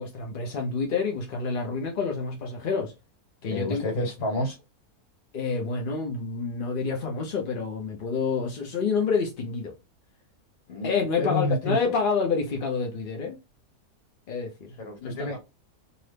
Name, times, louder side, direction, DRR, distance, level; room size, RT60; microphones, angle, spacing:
voice 1, 0.0-2.9 3.4-3.9 5.3-9.7 10.8-13.4 14.3-14.8 15.0-15.4, left 5 dB, 55° left, 0.6 m, -28 dB
voice 2, 3.5-4.6 10.7-10.9 11.2-11.9 14.8-15.4, left 1 dB, 70° left, 1.6 m, -29 dB
2.8 x 2.5 x 3.2 m
omnidirectional pair, 1.6 m